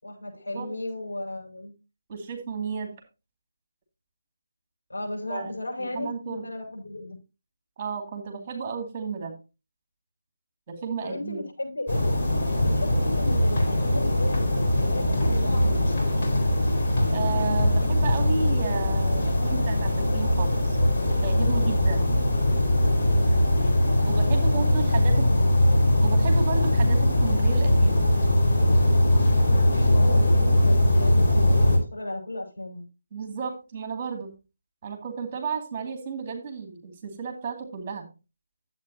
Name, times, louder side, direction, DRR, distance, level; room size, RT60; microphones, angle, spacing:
voice 1, 0.0-1.7 4.9-7.2 11.0-12.1 12.6-15.7 24.2-25.5 29.5-32.8, left 1 dB, 70° left, 1 dB, 5.7 m, -35 dB
voice 2, 2.1-2.9 5.3-5.5 5.8-6.4 7.8-9.3 10.7-11.4 17.1-20.8 21.2-22.1 24.0-25.3 26.0-28.0 33.1-34.3 34.8-38.0, right 5 dB, 30° right, 4 dB, 2.4 m, -33 dB
sound 1, 11.9-31.8, left 1 dB, 40° left, 4.1 m, -21 dB
11.5 x 8.3 x 2.8 m, 0.29 s
figure-of-eight pair, 155°, 0 cm